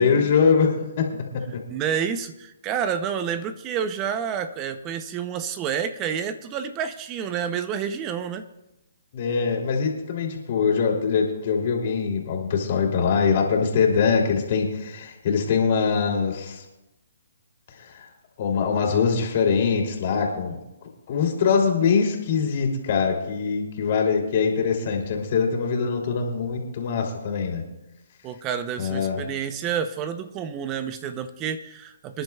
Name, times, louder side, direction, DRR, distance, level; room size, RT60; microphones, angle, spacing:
voice 1, 0.0-1.6 9.1-16.6 17.8-18.1 18.4-20.6 21.1-27.6 28.8-29.2, left 5 dB, 45° left, 1 dB, 2.9 m, -23 dB
voice 2, 1.7-8.5 28.2-32.2, right 8 dB, 20° right, 11 dB, 0.6 m, -29 dB
26.0 x 10.5 x 2.4 m, 0.95 s
hypercardioid pair, 155°, 0 cm